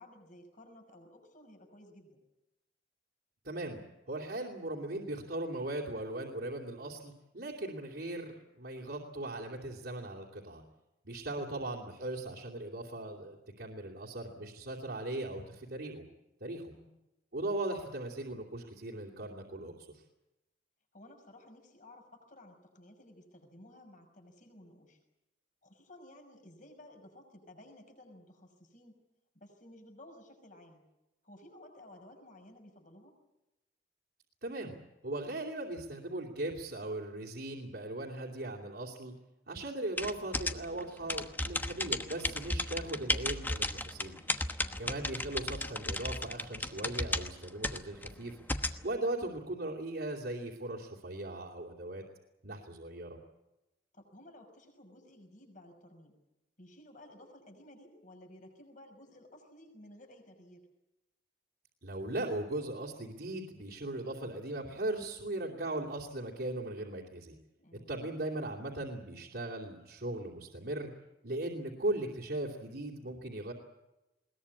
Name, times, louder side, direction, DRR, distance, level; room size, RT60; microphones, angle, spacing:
voice 1, 0.0-2.2 11.3-11.7 16.7-17.0 20.9-25.0 25.6-29.0 29.3-30.8 31.2-33.2 44.6-45.0 53.9-56.1 56.6-60.6 67.6-68.0, left 1 dB, 45° left, 4 dB, 5.9 m, -55 dB
voice 2, 3.4-3.8 4.1-10.6 11.0-16.0 16.4-16.7 17.3-19.9 34.4-34.7 35.0-39.1 39.5-44.2 44.8-48.4 48.8-52.0 52.4-53.2 61.8-67.3 67.7-70.9 71.2-73.5, right 1 dB, 65° right, -3 dB, 2.9 m, -38 dB
sound 1, 40.0-48.8, left 2 dB, 10° left, 1.1 m, -35 dB
21.5 x 20.0 x 8.6 m, 0.98 s
head